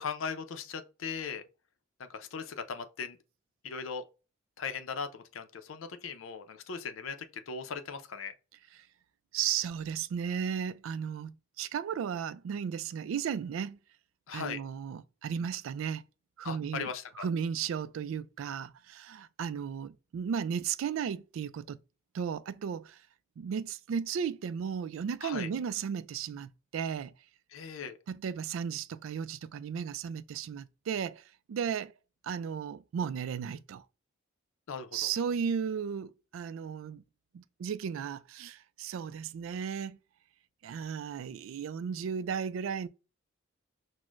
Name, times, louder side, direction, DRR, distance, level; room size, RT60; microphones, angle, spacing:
voice 1, 0.0-1.4 2.0-3.2 3.6-4.0 4.6-8.3 14.3-14.6 16.4-17.3 25.2-25.5 27.5-28.0 34.7-35.1, left 5 dB, 85° left, 0.5 m, -38 dB
voice 2, 9.3-13.8 14.3-16.0 16.4-16.9 17.2-21.8 22.1-22.9 23.4-27.1 28.1-31.2 31.5-31.9 32.2-33.8 34.9-37.0 37.3-40.0 40.6-42.9, right 7 dB, 80° right, 0.3 m, -35 dB
6.1 x 2.1 x 2.4 m
head